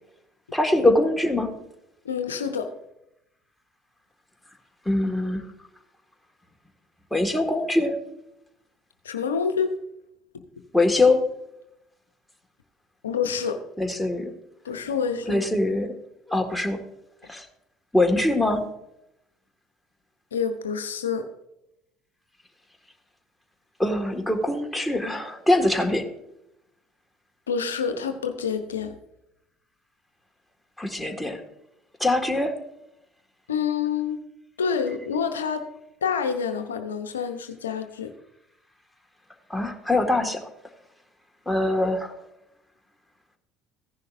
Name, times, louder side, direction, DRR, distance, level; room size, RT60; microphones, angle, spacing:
voice 1, 0.5-1.5 4.9-5.4 7.1-8.0 10.7-11.2 13.8-14.3 15.3-15.9 16.3-16.8 17.3-17.5 17.9-18.6 23.8-26.1 30.8-31.4 32.0-32.5 39.5-40.4 41.5-42.2, left 2 dB, 5° left, 3 dB, 1.8 m, -23 dB
voice 2, 2.0-2.7 9.0-9.7 13.0-13.6 14.6-15.4 20.3-21.3 27.5-28.9 33.5-34.2 34.6-35.7 36.0-38.1, left 6 dB, 80° left, 7 dB, 0.7 m, -27 dB
15.5 x 10.5 x 2.6 m, 0.85 s
figure-of-eight pair, 60°, 0 cm